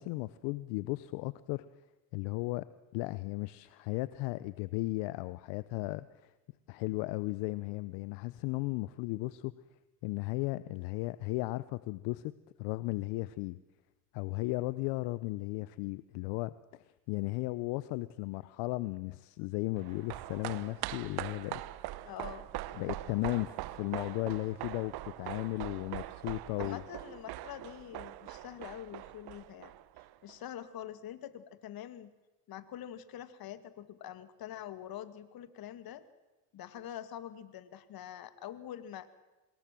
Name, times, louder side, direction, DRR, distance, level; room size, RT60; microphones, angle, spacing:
voice 1, 0.0-1.6 2.1-2.7 2.9-6.3 6.7-9.5 10.0-12.3 12.6-13.6 14.1-21.6 22.7-26.8, left 20 dB, 80° left, 17 dB, 0.9 m, -35 dB
sound 1, 19.8-30.3 30.6-30.7, right 16 dB, 65° right, 1.2 m, -42 dB
voice 2, 22.0-22.5 26.6-29.7 30.2-32.1 32.5-36.1 36.5-39.1, left 11 dB, 60° left, 13 dB, 2.2 m, -45 dB
26.0 x 21.0 x 7.6 m, 1.1 s
supercardioid pair, 85°, 41 cm